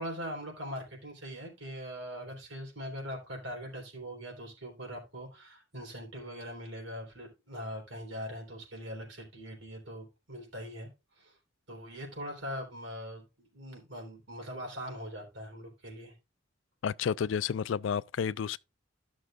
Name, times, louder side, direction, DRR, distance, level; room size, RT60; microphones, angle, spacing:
voice 1, 0.0-10.9 11.2-11.4 11.7-16.1, equal, 80° right, 3.9 m, -41 dB
voice 2, 16.8-18.6, left 7 dB, 80° left, 0.3 m, -31 dB
14.0 x 6.3 x 2.4 m
head